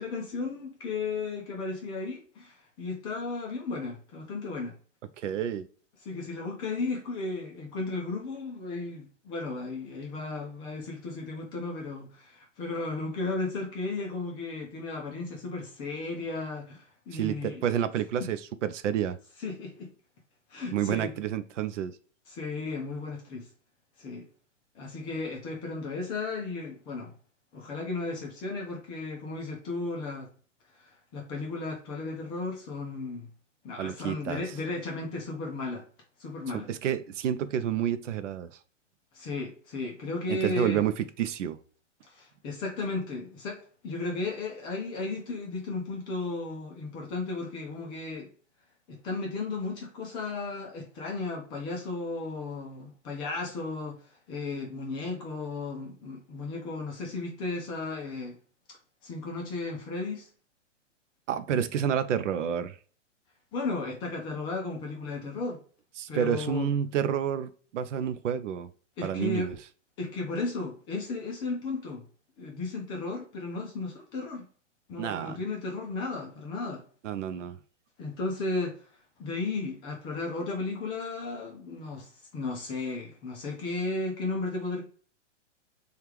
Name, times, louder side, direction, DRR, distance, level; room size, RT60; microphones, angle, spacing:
voice 1, 0.0-4.8 6.0-17.7 18.2-18.3 19.4-19.9 20.5-21.1 22.3-23.5 24.0-24.3 24.8-27.1 27.5-30.3 30.8-33.3 33.6-35.8 36.2-36.7 39.1-40.8 42.1-48.3 48.9-54.0 54.3-58.4 59.0-60.3 63.5-65.6 66.1-66.7 69.0-69.5 70.0-72.0 72.4-74.4 74.9-76.8 78.0-78.8 79.2-84.8, left 3 dB, 15° left, 0.4 m, -34 dB
voice 2, 5.2-5.7 17.1-19.2 20.7-22.0 33.8-34.4 36.5-38.5 40.3-41.6 61.3-62.8 66.0-68.7 69.0-69.5 75.0-75.4 77.0-77.6, right 9 dB, 75° right, 0.6 m, -29 dB
3.3 x 2.4 x 4.4 m
hypercardioid pair, 130°, 37 cm